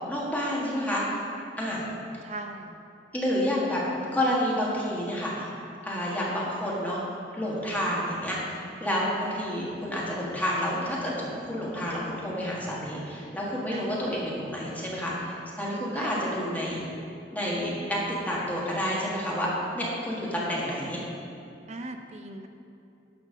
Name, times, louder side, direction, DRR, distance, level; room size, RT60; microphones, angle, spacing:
voice 1, 0.1-1.1 1.6-1.8 3.1-3.8 4.1-5.5 5.8-7.0 7.3-16.8 17.3-18.0 18.3-19.5 19.7-21.0, equal, 10° left, -6 dB, 1.6 m, -29 dB
voice 2, 2.2-2.8 13.7-14.2 15.9-16.4 21.7-22.5, right 2 dB, 40° right, 5 dB, 0.5 m, -38 dB
11.0 x 4.5 x 6.3 m, 2.6 s
head